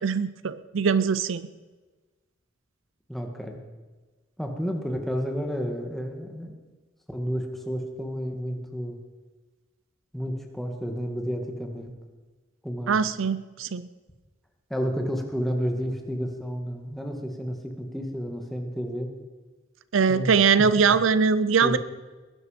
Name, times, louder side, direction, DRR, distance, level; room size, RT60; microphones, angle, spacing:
voice 1, 0.0-1.5 12.9-13.9 19.9-21.8, right 5 dB, 70° right, 15 dB, 0.5 m, -22 dB
voice 2, 3.1-3.6 4.4-6.5 7.1-9.0 10.1-12.0 12.6-13.1 14.7-19.1 20.1-20.4 20.8-21.0 21.6-21.8, equal, ahead, 2 dB, 2.0 m, -31 dB
20.0 x 11.0 x 5.2 m, 1.3 s
head